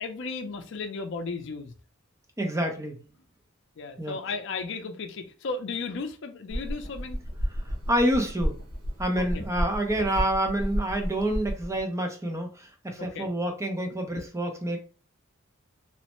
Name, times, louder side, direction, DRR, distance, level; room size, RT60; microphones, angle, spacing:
voice 1, 0.0-1.7 3.8-7.2 9.2-9.4 10.0-10.1 13.0-13.3, left 4 dB, 60° left, 0.4 m, -35 dB
voice 2, 2.4-3.0 4.0-4.2 7.9-8.6 9.0-14.8, right 1 dB, 15° right, 0.5 m, -28 dB
sound 1, 6.5-11.8, equal, 85° right, 0.8 m, -32 dB
3.0 x 2.1 x 2.9 m
head